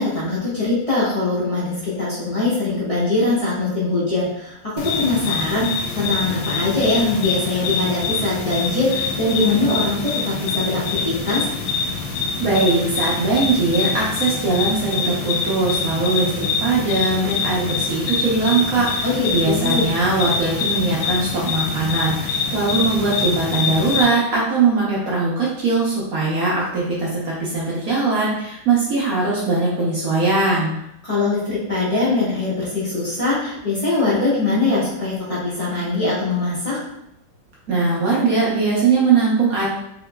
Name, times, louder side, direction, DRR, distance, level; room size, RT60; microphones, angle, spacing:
voice 1, 0.0-11.5 19.0-19.9 31.0-36.8, left 2 dB, 40° left, -8 dB, 0.5 m, -22 dB
sound 1, 4.8-24.0, left 4 dB, 75° left, 1.2 m, -25 dB
voice 2, 12.4-19.0 19.3-30.7 37.7-39.7, right 3 dB, 65° right, -6 dB, 0.9 m, -20 dB
3.7 x 3.0 x 2.2 m, 0.80 s
omnidirectional pair, 2.2 m